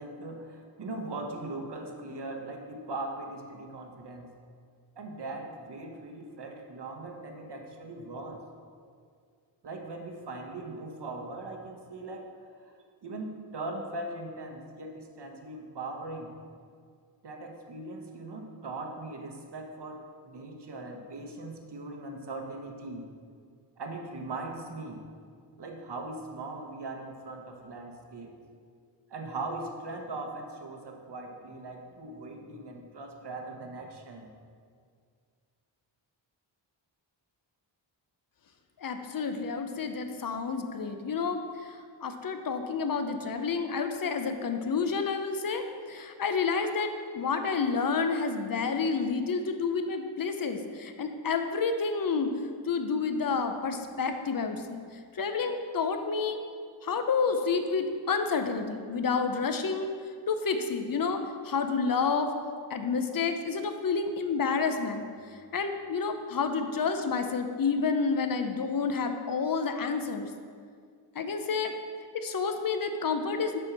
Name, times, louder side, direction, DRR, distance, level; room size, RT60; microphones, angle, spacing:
voice 1, 0.0-4.3 5.0-8.4 9.6-12.3 12.6-12.7 13.0-16.3 17.2-23.1 23.8-25.1 25.6-28.4 29.1-34.3, right 2 dB, 60° right, 3 dB, 1.0 m, -40 dB
voice 2, 38.8-52.3 52.6-54.8 55.1-56.4 56.8-59.9 60.3-62.3 62.7-65.0 65.5-70.3 71.1-71.7 72.1-73.6, left 5 dB, 45° left, 7 dB, 0.6 m, -29 dB
7.0 x 4.4 x 5.9 m, 2.1 s
wide cardioid pair, 115°, 47 cm